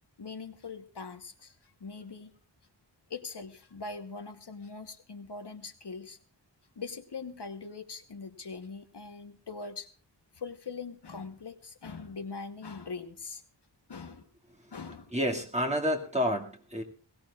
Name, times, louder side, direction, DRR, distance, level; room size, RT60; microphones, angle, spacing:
voice 1, 0.2-2.3 3.1-6.2 6.8-9.9 10.3-13.4 13.9-14.3 14.7-15.1, left 4 dB, 65° left, 7 dB, 1.1 m, -42 dB
voice 2, 15.1-16.8, equal, 15° right, 0 dB, 2.2 m, -29 dB
21.5 x 17.0 x 2.4 m, 0.40 s
wide cardioid pair, 55°, 44 cm